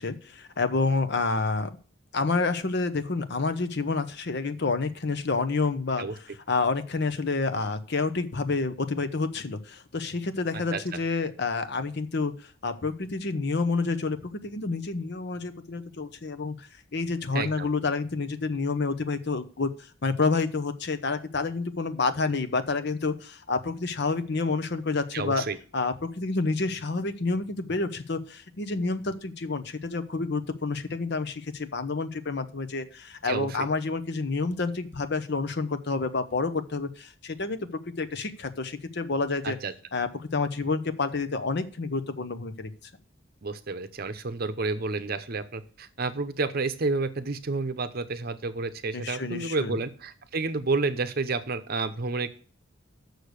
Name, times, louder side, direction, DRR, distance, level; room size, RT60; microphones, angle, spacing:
voice 1, 0.0-1.7 2.1-19.7 20.0-25.4 25.7-39.6 39.9-42.7 48.9-49.8, left 3 dB, 55° left, 11 dB, 0.8 m, -29 dB
voice 2, 17.3-17.7 25.1-25.6 33.2-33.5 39.4-39.7 43.4-52.3, right 3 dB, 45° right, 10 dB, 0.7 m, -30 dB
6.6 x 6.5 x 6.6 m, 0.41 s
head